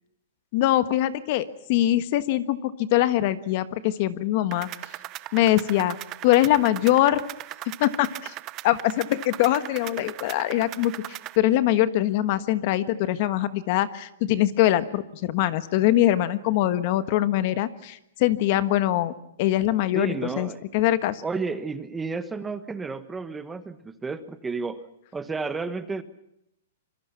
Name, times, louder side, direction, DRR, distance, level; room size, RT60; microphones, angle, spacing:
voice 1, 0.5-4.7 5.3-6.0 6.2-7.2 7.8-8.3 8.6-19.1 19.4-20.5 20.7-21.2, left 14 dB, 40° left, 13 dB, 1.3 m, -23 dB
sound 1, 4.5-11.4, right 16 dB, 25° right, 0.8 m, -39 dB
voice 2, 19.9-20.6 21.2-24.9 25.1-26.0, right 4 dB, 10° right, 11 dB, 1.3 m, -32 dB
26.0 x 23.5 x 5.9 m, 0.79 s
hypercardioid pair, 155°, 0 cm